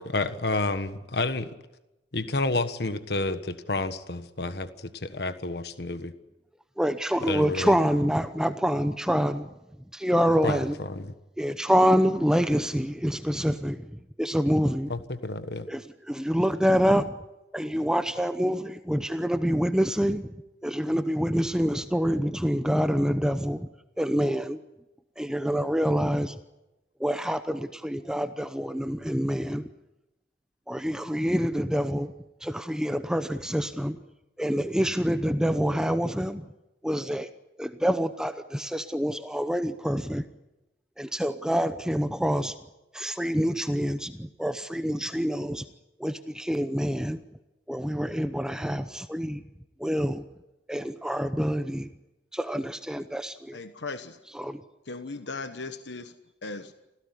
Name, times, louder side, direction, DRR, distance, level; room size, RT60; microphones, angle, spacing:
voice 1, 0.0-1.5 2.1-6.1 7.3-7.7 10.4-11.1 14.9-15.7, left 2 dB, 65° left, 11 dB, 1.4 m, -30 dB
voice 2, 6.8-9.5 9.9-10.7 11.4-13.8 14.2-14.9 15.7-17.1 17.5-20.3 20.6-23.7 24.0-24.6 25.2-26.3 27.0-29.7 30.7-32.1 32.4-34.0 34.4-36.4 36.8-37.3 37.6-40.2 41.0-42.5 42.9-45.6 46.0-47.2 47.7-49.4 49.8-50.2 50.7-51.9 52.3-53.6 54.3-54.6, equal, 5° right, 10 dB, 0.8 m, -26 dB
voice 3, 53.5-54.2 54.9-56.1 56.4-56.7, left 3 dB, 90° left, 9 dB, 1.2 m, -37 dB
27.0 x 16.5 x 9.8 m, 0.97 s
head